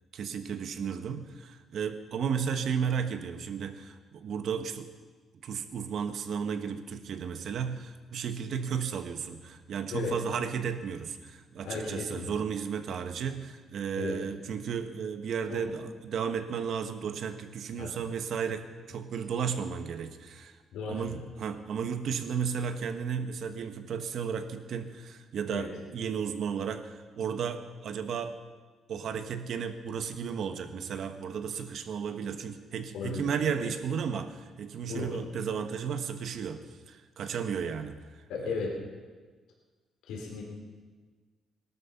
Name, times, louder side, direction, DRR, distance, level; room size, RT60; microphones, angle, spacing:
voice 1, 0.1-4.9 5.4-20.6 20.8-28.4 28.9-38.6, right 7 dB, 65° right, 8 dB, 1.3 m, -34 dB
voice 2, 11.6-12.3 14.0-14.2 15.5-15.7 17.8-17.9 20.7-21.2 25.5-25.7 32.9-33.3 33.6-33.7 34.9-35.2 38.3-38.7 40.1-40.4, left 5 dB, 90° left, -1 dB, 3.9 m, -35 dB
18.5 x 12.5 x 5.9 m, 1.4 s
cardioid pair, 90°, 0 cm